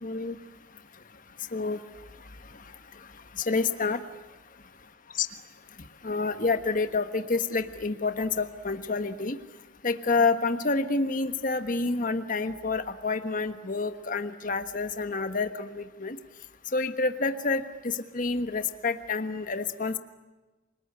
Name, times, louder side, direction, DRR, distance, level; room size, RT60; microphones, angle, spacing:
voice 1, 0.0-0.4 1.5-1.8 3.4-4.0 5.2-5.3 6.0-9.4 9.8-16.2 16.7-20.0, left 3 dB, 45° left, 9 dB, 1.3 m, -28 dB
29.0 x 20.0 x 9.9 m, 1.1 s
head